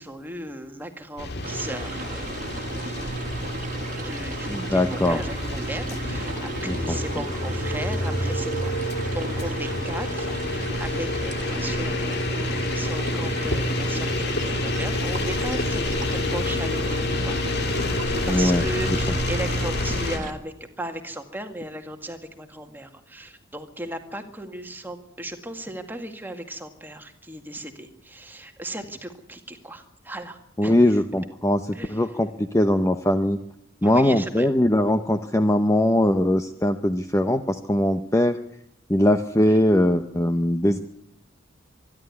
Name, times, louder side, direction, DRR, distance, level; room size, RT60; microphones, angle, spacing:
voice 1, 0.0-2.4 3.8-17.4 18.3-31.0 31.7-32.0 33.8-34.5, right 1 dB, 10° right, 5 dB, 1.9 m, -36 dB
sound 1, 1.2-20.2, left 1 dB, 55° left, 2.0 m, -28 dB
sound 2, 1.4-20.3, right 2 dB, 40° right, 1.9 m, -35 dB
voice 2, 4.5-5.2 6.6-7.0 18.3-18.6 30.6-33.4 33.8-38.4 38.9-40.8, left 1 dB, 15° left, 8 dB, 0.7 m, -21 dB
24.5 x 11.5 x 9.6 m, 0.78 s
head